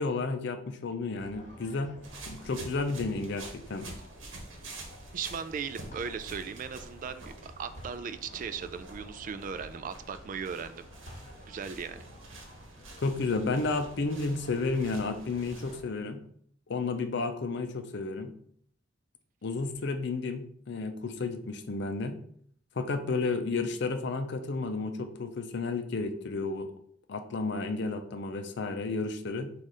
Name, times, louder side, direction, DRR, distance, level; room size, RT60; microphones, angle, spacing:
voice 1, 0.0-1.9 2.3-3.9 13.0-16.2 16.7-18.3 19.4-22.2 22.8-26.7 27.1-29.5, left 3 dB, 65° left, 8 dB, 0.5 m, -32 dB
sound 1, 1.2-15.9, equal, 40° left, 1.3 m, -51 dB
sound 2, 2.0-15.8, right 2 dB, 85° right, 1.0 m, -48 dB
voice 2, 5.1-10.9 11.4-12.0, right 6 dB, 45° right, 11 dB, 0.3 m, -37 dB
4.1 x 2.5 x 4.8 m, 0.62 s
head